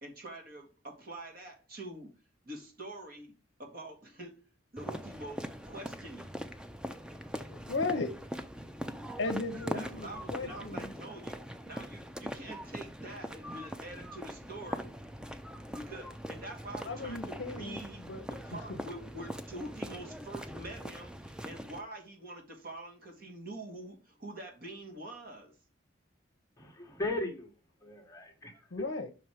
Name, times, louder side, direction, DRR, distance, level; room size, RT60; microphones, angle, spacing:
voice 1, 0.0-2.1 2.4-4.5 4.7-6.4 9.6-14.9 15.7-18.0 18.3-25.6, right 1 dB, 50° right, 1.6 m, -45 dB
sound 1, 4.8-21.8, equal, 5° right, 0.4 m, -42 dB
voice 2, 7.5-8.1 9.2-10.9 16.9-18.3 18.7-18.8 28.7-29.1, left 3 dB, 65° left, 0.6 m, -36 dB
voice 3, 26.6-27.5 27.8-28.9, left 2 dB, 15° left, 0.9 m, -37 dB
6.0 x 4.3 x 4.9 m
head